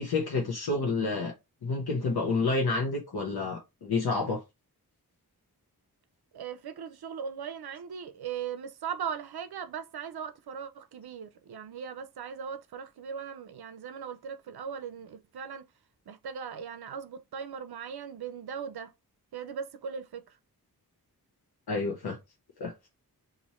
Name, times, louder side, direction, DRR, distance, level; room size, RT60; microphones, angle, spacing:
voice 1, 0.0-1.3 1.6-4.4 21.7-22.2 22.6-22.7, left 3 dB, 85° left, 0.9 m, -29 dB
voice 2, 6.3-15.6 16.1-18.9 19.3-20.2, right 7 dB, 85° right, 0.5 m, -39 dB
3.0 x 2.6 x 4.1 m
wide cardioid pair, 100°, 37 cm